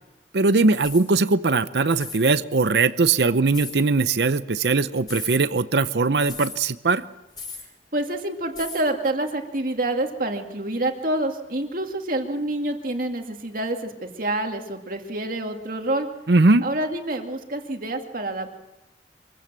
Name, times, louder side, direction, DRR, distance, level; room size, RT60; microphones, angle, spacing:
voice 1, 0.3-7.0 16.3-16.6, right 3 dB, 70° right, 13 dB, 0.7 m, -20 dB
sound 1, 0.8-1.1 1.9-2.3 3.5-3.8 5.0-5.4 6.3-6.6 7.4-7.7 8.6-8.9, left 4 dB, 25° left, 5.9 m, -37 dB
voice 2, 7.9-16.1 16.6-18.5, right 1 dB, 50° right, 4 dB, 2.3 m, -27 dB
24.5 x 16.0 x 7.5 m, 1.0 s
head